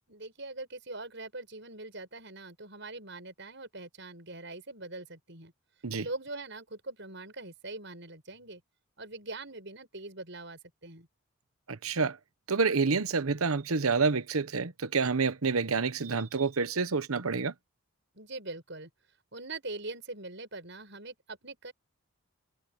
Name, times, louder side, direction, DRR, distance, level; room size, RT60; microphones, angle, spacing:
voice 1, 0.1-5.5 6.0-8.6 9.0-11.1 18.1-18.9 19.3-21.7, right 2 dB, 55° right, 7.7 m, -42 dB
voice 2, 11.7-12.2 12.5-17.5, right 4 dB, 85° right, 1.0 m, -28 dB
head